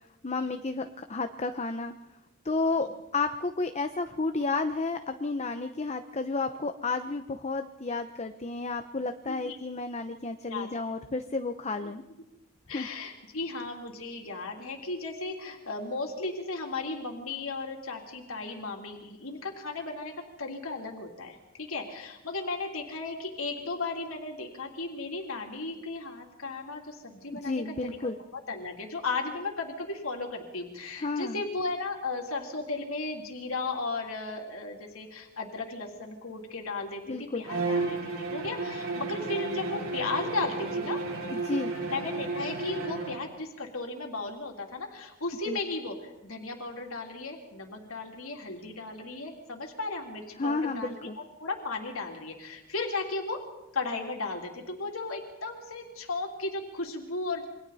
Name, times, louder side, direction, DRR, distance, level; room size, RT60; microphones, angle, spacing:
voice 1, 0.2-1.9 2.4-12.0 12.7-12.9 27.3-28.2 31.0-31.4 37.1-37.4 41.3-41.7 45.5-45.6 50.4-51.2, left 3 dB, 30° left, 7 dB, 0.8 m, -31 dB
voice 2, 9.3-9.6 10.5-10.8 11.8-11.9 12.7-28.0 28.3-41.0 41.9-53.5 53.7-57.5, left 3 dB, 75° left, 1 dB, 3.3 m, -35 dB
Bowed string instrument, 37.4-43.3, right 3 dB, 65° right, 3.9 m, -33 dB
28.5 x 24.0 x 4.2 m, 1.0 s
head